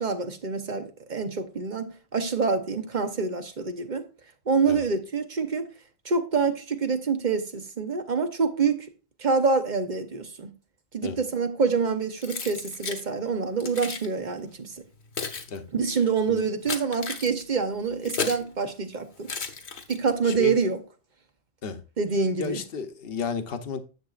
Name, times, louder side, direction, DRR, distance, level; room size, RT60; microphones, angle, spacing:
voice 1, 0.0-4.0 4.5-5.7 6.0-8.9 9.2-10.5 10.9-14.7 15.7-19.3 19.9-20.8 22.0-22.6, right 5 dB, 45° right, 0.9 m, -26 dB
Keys jangling, 12.2-13.0 13.6-14.1 14.8-18.5 19.2-20.2, left 5 dB, 80° left, 1.4 m, -34 dB
voice 2, 20.2-20.6 21.6-21.8 22.4-23.8, left 6 dB, 65° left, 1.1 m, -32 dB
10.5 x 7.4 x 2.4 m
omnidirectional pair, 1.1 m